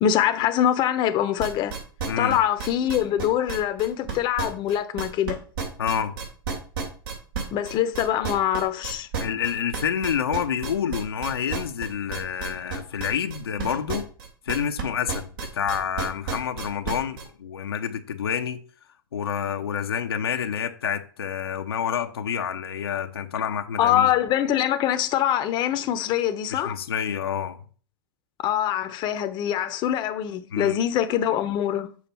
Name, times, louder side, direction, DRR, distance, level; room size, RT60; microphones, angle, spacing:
voice 1, 0.0-1.7 2.2-5.4 7.5-9.1 23.5-26.8 28.4-31.9, left 10 dB, 35° left, 0.8 m, -24 dB
sound 1, 1.4-5.3 5.6-14.8 15.1-17.2, right 5 dB, 70° right, 3.0 m, -31 dB
voice 2, 2.1-2.4 5.8-6.2 9.2-14.1 14.5-18.6 19.1-24.1 26.5-27.6 30.5-30.8, left 8 dB, 85° left, 0.8 m, -28 dB
7.2 x 5.0 x 4.3 m
hypercardioid pair, 110°, 12 cm